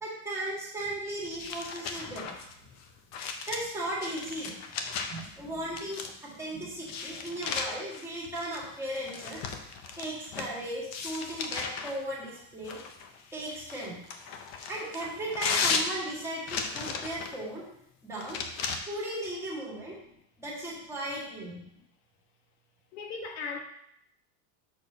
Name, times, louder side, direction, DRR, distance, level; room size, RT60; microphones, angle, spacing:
voice 1, 0.0-2.3 3.5-4.5 5.1-9.4 10.0-12.8 13.3-14.0 14.7-17.6 18.0-18.4 18.9-20.0 20.4-21.6, right 1 dB, 5° right, -6 dB, 2.1 m, -36 dB
sound 1, 1.3-5.3 5.8-6.3 6.8-10.5 10.9-12.0 12.6-17.4 18.2-18.8, left 5 dB, 40° left, 0.7 m, -35 dB
voice 2, 22.9-23.6, left 5 dB, 85° left, 3 dB, 1.4 m, -37 dB
6.4 x 4.5 x 5.3 m, 0.74 s
cardioid pair, 170°, 44 cm